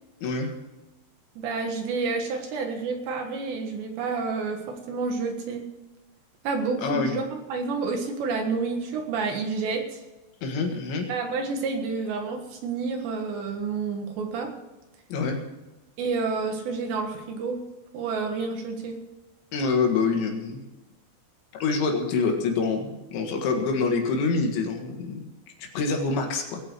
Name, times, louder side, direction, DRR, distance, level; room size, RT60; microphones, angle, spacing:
voice 1, 0.2-0.5 6.8-7.2 10.4-11.1 15.1-15.4 19.5-20.6 21.5-25.3 25.6-26.6, left 4 dB, 70° left, 3 dB, 3.9 m, -26 dB
voice 2, 1.4-5.6 6.4-10.0 11.1-14.5 16.0-17.6 17.9-19.0, right 4 dB, 65° right, 4 dB, 3.4 m, -29 dB
19.0 x 8.9 x 6.0 m, 1.1 s
omnidirectional pair, 5.8 m